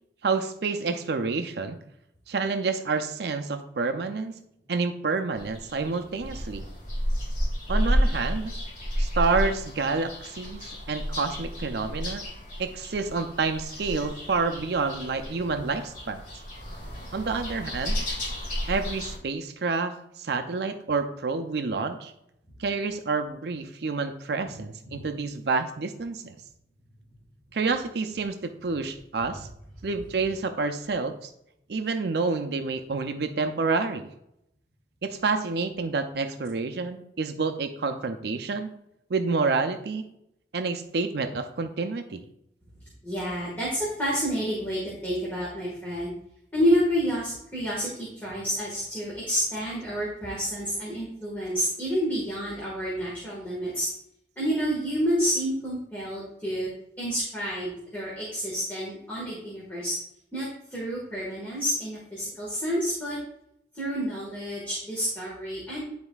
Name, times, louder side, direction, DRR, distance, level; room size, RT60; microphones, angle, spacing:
voice 1, 0.2-1.8 2.3-4.3 4.7-6.6 7.7-8.5 9.0-12.2 12.6-16.2 17.1-18.0 18.7-22.1 22.6-26.4 27.5-29.5 29.8-31.2 31.7-34.1 35.0-38.7 39.1-40.0 40.5-42.2, right 4 dB, 65° right, 7 dB, 0.5 m, -28 dB
sound 1, 5.4-19.2, equal, 45° left, 2.2 m, -31 dB
voice 2, 43.0-46.1 46.5-53.9 54.4-56.7 57.0-59.9 60.3-63.2 63.7-65.8, equal, 10° left, -7 dB, 1.5 m, -29 dB
9.9 x 4.3 x 2.3 m, 0.78 s
head